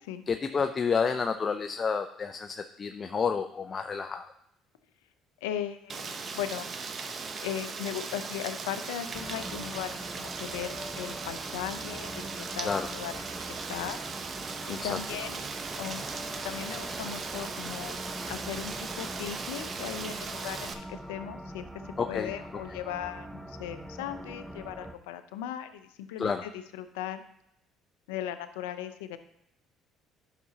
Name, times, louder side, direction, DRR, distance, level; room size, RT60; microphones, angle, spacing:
voice 1, 0.3-4.3 12.6-12.9 14.7-15.0 22.0-22.6 26.2-26.4, left 5 dB, 40° left, 7 dB, 0.5 m, -30 dB
voice 2, 5.4-6.7 7.4-14.0 14.7-27.2 28.1-29.2, left 10 dB, 85° left, 11 dB, 0.5 m, -38 dB
Rain, 5.9-20.7, right 5 dB, 40° right, 0.8 m, -38 dB
sound 1, 9.1-24.9, equal, 5° right, 0.6 m, -43 dB
10.5 x 5.9 x 2.8 m, 0.75 s
supercardioid pair, 70°, 0 cm